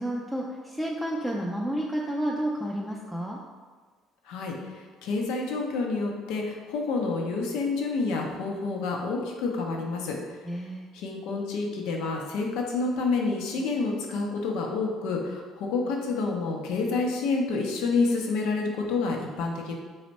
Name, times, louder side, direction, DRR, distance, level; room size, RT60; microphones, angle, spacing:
voice 1, 0.0-3.4 10.4-10.9, right 1 dB, ahead, -3 dB, 0.3 m, -30 dB
voice 2, 4.3-10.2 10.9-19.7, left 3 dB, 80° left, 1 dB, 0.5 m, -28 dB
3.3 x 2.1 x 4.0 m, 1.5 s
cardioid pair, 100°, 0 cm